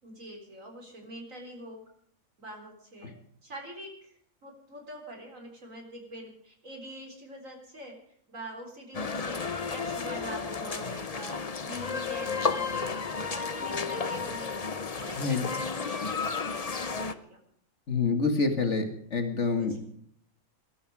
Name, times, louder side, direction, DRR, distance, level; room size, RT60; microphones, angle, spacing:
voice 1, 0.0-1.8 2.4-3.1 3.4-7.9 8.3-14.6 14.9-17.4 19.5-19.8, right 1 dB, 65° right, 3 dB, 4.6 m, -44 dB
sound 1, 8.9-17.1, left 5 dB, 30° left, 0.8 m, -32 dB
voice 2, 17.9-19.7, left 4 dB, 55° left, 5 dB, 2.3 m, -27 dB
21.0 x 13.0 x 4.9 m, 0.65 s
omnidirectional pair, 1.5 m